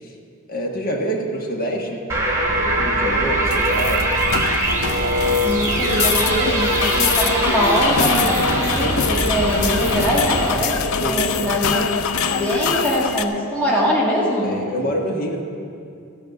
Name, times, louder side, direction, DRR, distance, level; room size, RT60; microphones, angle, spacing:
voice 1, 0.5-2.0 2.5-4.1 11.0-11.5 14.4-15.5, right 1 dB, 40° left, 0 dB, 1.4 m, -26 dB
sound 1, 2.1-10.5, right 1 dB, 10° right, 2.0 m, -21 dB
sound 2, 3.5-13.2, left 6 dB, 70° left, 0.5 m, -24 dB
voice 2, 5.4-10.8 11.0-12.0 12.4-14.5, equal, 5° left, -6 dB, 1.9 m, -22 dB
14.5 x 5.8 x 8.0 m, 2.5 s
head